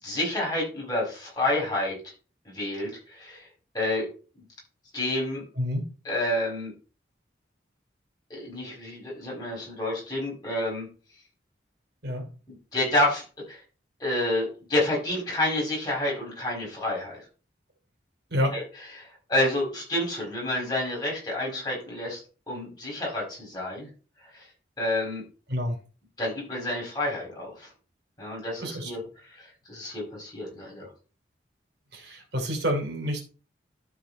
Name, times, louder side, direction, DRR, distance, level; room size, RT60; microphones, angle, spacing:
voice 1, 0.0-1.9 2.5-3.5 3.7-4.1 4.4-4.5 4.9-5.4 6.1-6.7 8.3-10.9 12.5-13.6 14.0-17.2 18.5-18.6 19.0-22.2 22.5-23.9 24.3-24.4 24.8-25.2 26.2-27.7 28.2-29.0 29.3-30.9, left 1 dB, 20° left, -3 dB, 5.1 m, -29 dB
voice 2, 28.6-28.9 31.9-33.2, equal, 65° right, 2 dB, 3.0 m, -28 dB
12.5 x 4.8 x 4.2 m, 0.36 s
head